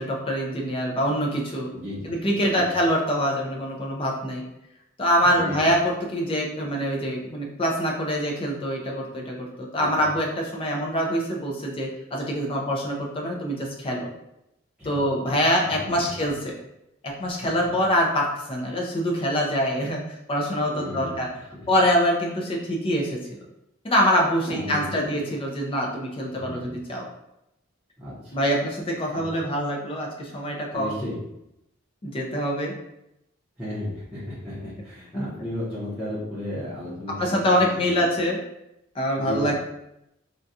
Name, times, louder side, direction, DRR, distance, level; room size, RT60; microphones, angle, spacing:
voice 1, 0.0-1.7 2.0-4.4 5.0-14.1 14.8-16.5 17.0-21.3 21.7-23.2 23.8-27.1 28.3-30.9 32.0-32.7 35.1-35.2 37.2-38.4 38.9-39.5, equal, 25° left, -1 dB, 0.5 m, -25 dB
voice 2, 1.7-2.1 2.5-2.7 5.2-5.6 9.8-10.0 14.8-15.1 17.4-17.5 20.7-21.2 24.4-25.2 26.3-26.7 28.0-28.4 29.1-29.2 30.7-31.2 33.6-38.1 39.2-39.5, left 1 dB, 5° right, -12 dB, 0.8 m, -34 dB
3.7 x 2.3 x 2.6 m, 0.86 s
head